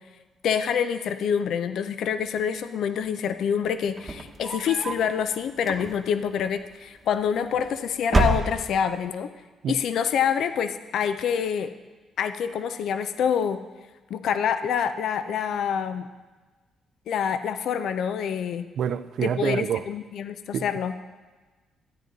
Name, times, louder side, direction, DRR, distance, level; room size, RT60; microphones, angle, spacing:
voice 1, 0.4-9.3 9.7-11.7 12.2-13.6 14.1-16.1 17.1-18.7 19.2-21.0, left 8 dB, 70° left, 11 dB, 0.5 m, -26 dB
sound 1, 3.9-5.1 5.6-6.2 7.2-7.7 8.0-9.0, right 2 dB, 30° right, 1.0 m, -27 dB
voice 2, 18.8-19.8 20.5-20.6, right 8 dB, 70° right, 13 dB, 0.4 m, -26 dB
13.0 x 9.3 x 4.0 m, 1.3 s
cardioid pair, 90°, 0 cm